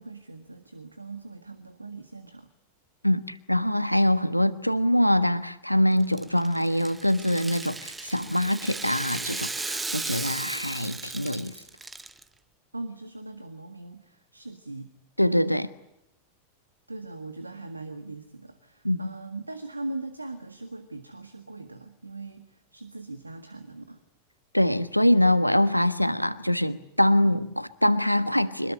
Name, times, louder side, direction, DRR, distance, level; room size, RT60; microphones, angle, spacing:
voice 1, 0.0-2.5 12.7-14.9 16.9-24.0, right 2 dB, 80° right, 10 dB, 1.7 m, -40 dB
voice 2, 3.0-11.5 15.2-15.7 18.8-19.1 24.5-28.7, left 1 dB, 90° left, 14 dB, 1.2 m, -24 dB
Rattle (instrument), 6.0-12.2, right 3 dB, 10° right, 1.0 m, -36 dB
25.5 x 20.5 x 8.6 m, 0.84 s
figure-of-eight pair, 90°, 0 cm